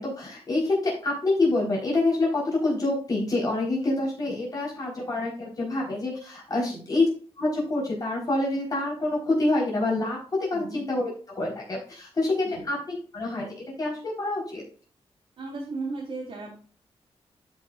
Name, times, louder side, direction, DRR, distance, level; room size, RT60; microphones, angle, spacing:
voice 1, 0.0-7.1 7.4-13.5 13.8-14.6, left 2 dB, 35° left, -3 dB, 4.1 m, -27 dB
voice 2, 15.4-16.5, right 3 dB, 65° right, -5 dB, 3.3 m, -35 dB
13.0 x 6.0 x 2.5 m, 0.41 s
wide cardioid pair, 135°, 11 cm